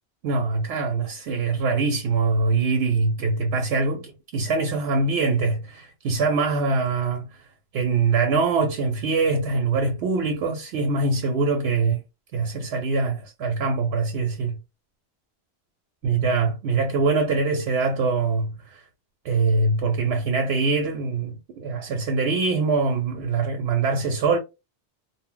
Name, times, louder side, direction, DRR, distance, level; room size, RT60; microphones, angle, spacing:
voice 1, 0.2-7.3 7.7-12.0 12.3-14.6 16.0-18.8 19.2-24.4, right 4 dB, 85° right, 0.8 m, -23 dB
2.0 x 2.0 x 3.7 m
omnidirectional pair, 1.1 m